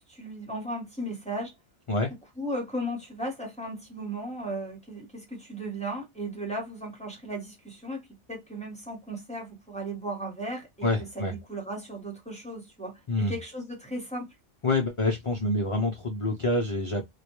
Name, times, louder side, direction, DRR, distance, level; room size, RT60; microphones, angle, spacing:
voice 1, 0.0-1.5 2.4-10.9 11.1-14.3, right 1 dB, 5° left, 0.7 m, -36 dB
voice 2, 10.8-11.3 13.1-13.3 14.6-17.0, left 2 dB, 55° left, 0.3 m, -27 dB
2.2 x 2.1 x 2.9 m
omnidirectional pair, 1.2 m